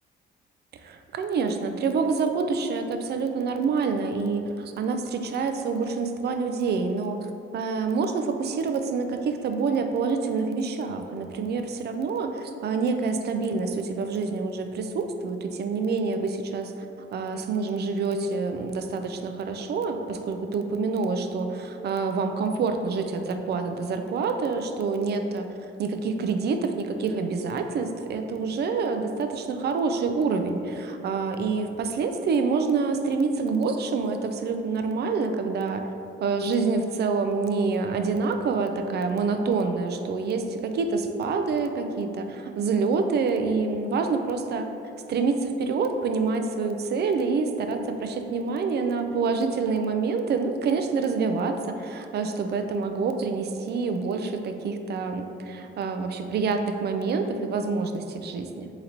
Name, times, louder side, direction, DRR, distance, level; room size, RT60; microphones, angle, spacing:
voice 1, 0.8-16.7 17.1-25.5 25.8-35.9 36.2-44.7 45.1-58.7, right 4 dB, 55° right, 6 dB, 0.4 m, -27 dB
3.9 x 2.9 x 4.1 m, 2.7 s
cardioid pair, 90°, 20 cm